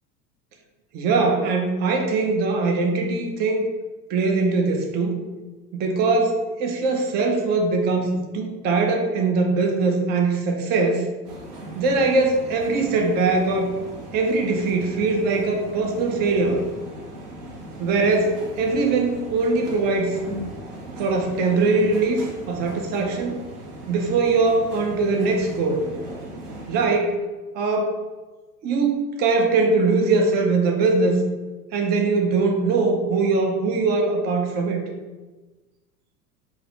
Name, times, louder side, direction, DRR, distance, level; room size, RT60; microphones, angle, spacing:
voice 1, 0.9-3.7 4.1-5.3 5.7-11.0 11.7-13.7 14.1-16.6 17.8-20.2 21.0-23.4 23.9-25.8 26.7-27.1 27.5-28.0 28.6-31.2 31.7-34.8, right 3 dB, 20° right, 3 dB, 0.4 m, -21 dB
sound 1, 11.2-26.8, right 1 dB, 65° right, 1.0 m, -38 dB
3.0 x 2.4 x 4.0 m, 1.2 s
figure-of-eight pair, 80°, 48 cm